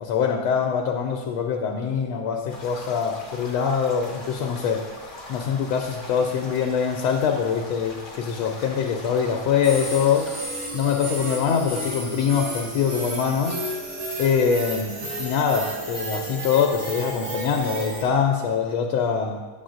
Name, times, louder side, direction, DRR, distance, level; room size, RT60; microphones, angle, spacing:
voice 1, 0.0-4.8 5.3-10.3 10.7-13.6 14.2-19.4, left 6 dB, 85° left, 2 dB, 1.4 m, -24 dB
sound 1, 2.5-10.4, left 2 dB, 30° left, 1.2 m, -41 dB
sound 2, 9.6-18.0, right 1 dB, 55° right, 2.0 m, -32 dB
9.2 x 6.9 x 2.5 m, 1.3 s
omnidirectional pair, 2.2 m